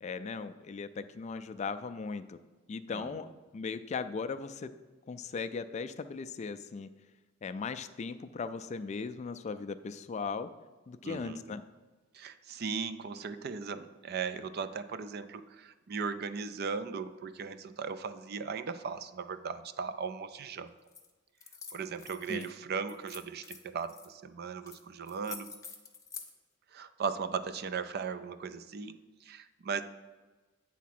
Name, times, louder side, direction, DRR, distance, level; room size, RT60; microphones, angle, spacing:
voice 1, 0.0-2.4 2.7-3.3 3.5-4.7 5.1-6.9 7.4-10.5 10.9-11.6 22.3-22.5, left 5 dB, 35° left, 10 dB, 0.3 m, -38 dB
voice 2, 11.0-11.6 12.1-20.7 21.7-25.5 26.7-29.8, right 5 dB, 55° right, 12 dB, 0.4 m, -38 dB
sound 1, 20.9-21.1 21.4-22.5 22.9-24.1 24.7-24.8 25.1-26.3, left 5 dB, 15° left, 0.7 m, -47 dB
8.4 x 3.6 x 5.9 m, 1.3 s
head